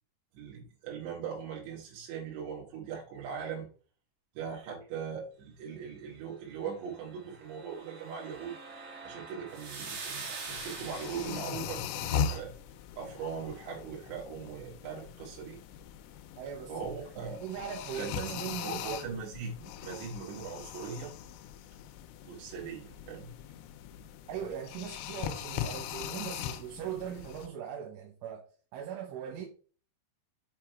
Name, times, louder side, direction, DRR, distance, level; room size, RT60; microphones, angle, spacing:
voice 1, 0.3-3.7 4.4-8.5 9.0-12.5 13.0-15.6 16.7-17.4 17.9-21.1 22.2-23.3, right 6 dB, 70° right, 3.6 m, -40 dB
sound 1, 7.0-11.7, right 4 dB, 50° right, 3.8 m, -44 dB
sound 2, 10.5-27.5, left 8 dB, 85° left, 3.1 m, -40 dB
voice 2, 16.4-16.7 17.4-19.2 24.3-28.5 28.7-29.5, right 8 dB, 85° right, 3.8 m, -40 dB
7.4 x 5.3 x 4.5 m
omnidirectional pair, 5.5 m